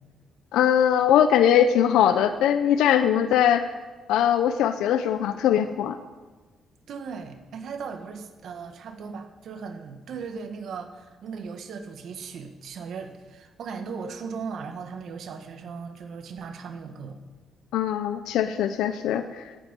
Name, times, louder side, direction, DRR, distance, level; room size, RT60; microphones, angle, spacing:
voice 1, 0.5-3.7 4.1-6.0 17.7-19.4, left 9 dB, 85° left, 10 dB, 0.7 m, -21 dB
voice 2, 6.9-17.2, right 5 dB, 70° right, 6 dB, 1.7 m, -37 dB
9.9 x 9.9 x 9.1 m, 1.3 s
cardioid pair, 90°, 0 cm